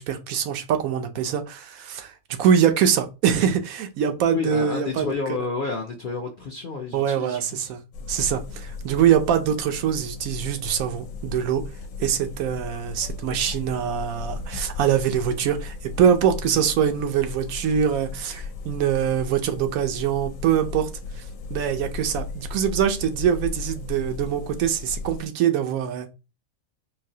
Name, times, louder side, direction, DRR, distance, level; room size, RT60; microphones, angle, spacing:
voice 1, 0.0-5.1 6.9-7.8 8.1-11.7 12.0-20.9 21.5-26.1, right 8 dB, 85° right, 1.1 m, -23 dB
voice 2, 4.3-7.7 16.5-16.6, left 4 dB, 60° left, 0.5 m, -30 dB
sound 1, 7.9-25.2, left 4 dB, 75° left, 1.0 m, -36 dB
4.0 x 2.7 x 2.7 m
omnidirectional pair, 1.4 m